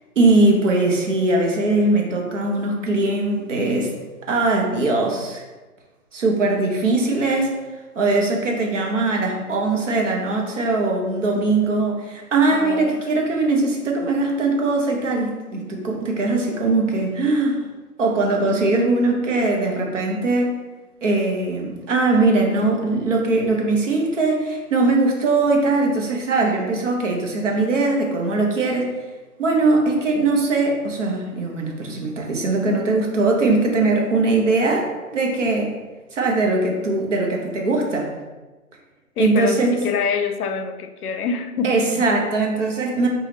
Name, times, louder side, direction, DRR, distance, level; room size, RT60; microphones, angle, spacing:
voice 1, 0.2-3.9 4.3-5.4 6.1-17.7 18.0-20.6 21.0-28.9 29.4-35.7 36.1-38.1 39.2-39.8 41.6-43.1, right 2 dB, 55° right, 0 dB, 0.8 m, -20 dB
voice 2, 12.5-13.1 39.2-42.1, left 5 dB, 90° left, 9 dB, 0.5 m, -26 dB
3.3 x 2.3 x 3.7 m, 1.2 s
hypercardioid pair, 170°, 44 cm